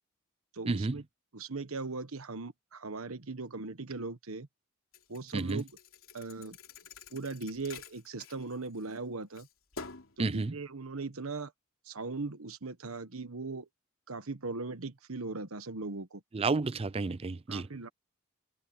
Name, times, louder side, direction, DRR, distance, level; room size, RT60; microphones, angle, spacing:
voice 1, 0.5-1.0 1.3-4.5 5.1-5.7 6.1-6.6 7.1-9.5 10.2-11.5 11.8-13.7 14.1-16.2 17.5-17.9, right 3 dB, 75° right, 1.3 m, -39 dB
Thump thud, 4.9-9.0 9.4-10.2, left 4 dB, 70° left, 3.4 m, -48 dB
voice 2, 5.3-5.6 10.2-10.5 16.3-17.7, right 3 dB, 25° right, 0.4 m, -31 dB
head